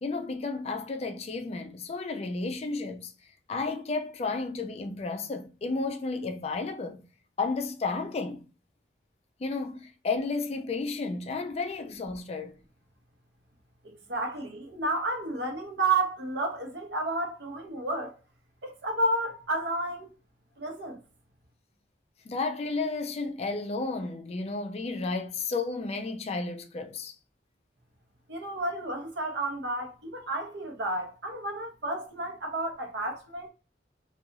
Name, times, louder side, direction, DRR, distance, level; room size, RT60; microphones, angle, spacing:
voice 1, 0.0-3.1 3.5-7.0 7.4-8.4 9.4-12.6 22.3-27.2, left 3 dB, 35° left, 0.3 m, -32 dB
voice 2, 13.8-18.2 18.6-20.1 20.6-21.0 28.3-33.5, right 2 dB, 75° right, 0.8 m, -31 dB
2.5 x 2.3 x 2.8 m
head